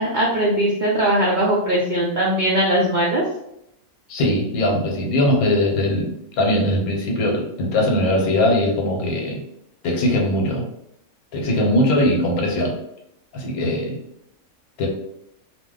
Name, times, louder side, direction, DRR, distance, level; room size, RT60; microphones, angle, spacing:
voice 1, 0.0-3.2, right 1 dB, 70° right, -4 dB, 0.4 m, -20 dB
voice 2, 4.1-9.4 9.8-10.6 11.3-12.7 13.3-14.0 14.8-14.9, left 1 dB, 85° left, 0 dB, 1.2 m, -20 dB
2.5 x 2.1 x 3.7 m, 0.78 s
omnidirectional pair, 1.5 m